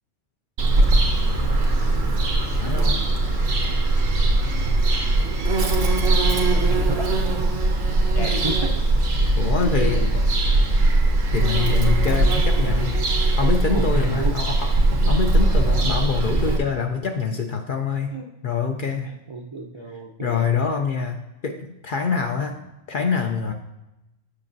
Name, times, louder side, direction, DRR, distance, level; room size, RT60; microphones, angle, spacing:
Bird vocalization bird call bird song, 0.6-16.6, right 2 dB, 90° right, 1.3 m, -20 dB
voice 1, 2.6-3.0 8.2-8.3 9.4-10.2 11.3-14.7 15.1-18.1 18.4-19.1 20.2-22.6 22.9-23.5, left 5 dB, 60° left, 4 dB, 0.6 m, -25 dB
voice 2, 5.0-5.4 6.1-7.2 8.1-8.7 9.6-9.9 10.3-10.5 12.1-12.4 13.7-14.5 18.1-18.2 19.0-20.4 22.5-22.6, right 2 dB, 40° right, 0 dB, 0.4 m, -33 dB
8.4 x 6.6 x 2.6 m, 0.94 s
omnidirectional pair, 1.3 m